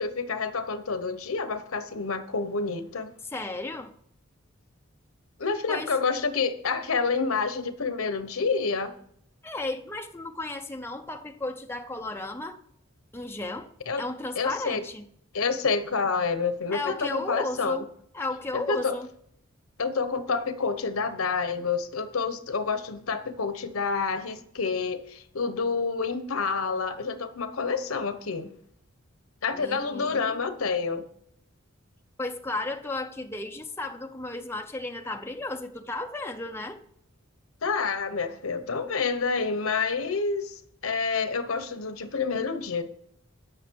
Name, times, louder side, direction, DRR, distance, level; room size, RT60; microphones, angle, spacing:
voice 1, 0.0-3.1 5.4-8.9 13.9-14.0 14.4-14.8 15.3-17.8 18.5-19.0 19.8-28.5 29.4-31.0 37.6-42.8, left 4 dB, 80° left, 1.0 m, -28 dB
voice 2, 3.3-3.9 5.7-5.9 9.4-12.6 13.1-13.7 14.0-15.1 16.7-17.9 18.1-19.1 29.5-30.5 32.2-36.8, left 2 dB, 10° left, 0.7 m, -34 dB
16.0 x 6.2 x 4.6 m
head